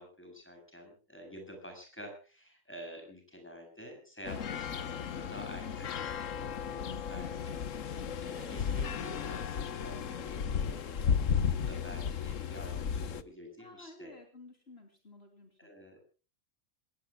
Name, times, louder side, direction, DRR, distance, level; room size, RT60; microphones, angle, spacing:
voice 1, 0.0-14.1 15.6-16.0, equal, 10° left, 4 dB, 7.4 m, -49 dB
sound 1, 4.3-13.2, left 7 dB, 70° left, 1.4 m, -34 dB
voice 2, 6.7-7.4 13.6-15.7, left 2 dB, 50° left, 4 dB, 3.5 m, -53 dB
27.0 x 17.5 x 2.3 m, 0.35 s
omnidirectional pair, 1.4 m